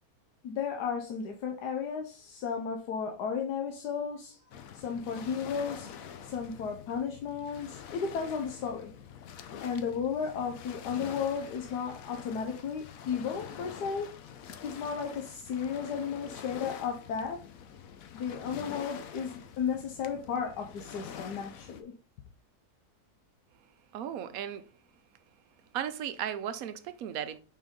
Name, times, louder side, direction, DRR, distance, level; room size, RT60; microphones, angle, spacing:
voice 1, 0.4-4.4 4.7-5.9 6.2-8.9 9.6-14.1 14.6-17.4 18.1-21.9, left 6 dB, 85° left, 1.3 m, -34 dB
Waves surf, 4.5-21.8, left 8 dB, 65° left, 1.0 m, -46 dB
voice 2, 23.9-24.6 25.7-27.4, right 9 dB, 70° right, 1.0 m, -35 dB
5.6 x 4.6 x 3.6 m
omnidirectional pair, 1.7 m